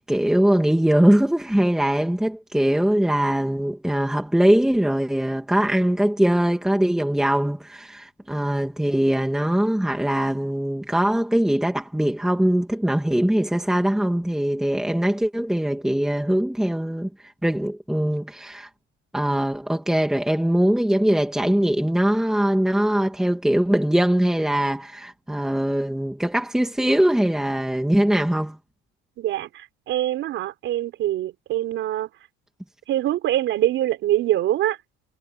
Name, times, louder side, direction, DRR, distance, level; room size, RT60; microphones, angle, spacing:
voice 1, 0.0-18.7 19.1-28.6, right 1 dB, ahead, 2.1 m, -21 dB
voice 2, 29.2-32.1 32.9-34.8, right 13 dB, 40° right, 5.0 m, -24 dB
cardioid pair, 175°, 29 cm